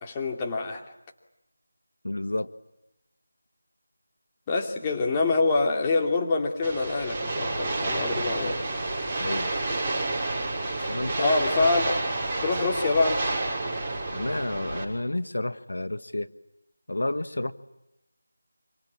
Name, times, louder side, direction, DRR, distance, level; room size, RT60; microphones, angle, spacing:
voice 1, 0.0-0.8 4.5-8.6 11.2-12.0 12.4-13.3, left 3 dB, 20° left, 1 dB, 2.7 m, -25 dB
voice 2, 2.0-2.5 9.2-9.5 10.8-11.4 14.1-16.3 16.9-17.5, left 1 dB, 75° left, 12 dB, 1.3 m, -30 dB
sound 1, 6.6-14.8, right 2 dB, 10° right, 6.3 m, -29 dB
26.5 x 26.0 x 8.6 m, 0.88 s
figure-of-eight pair, 165°, 0 cm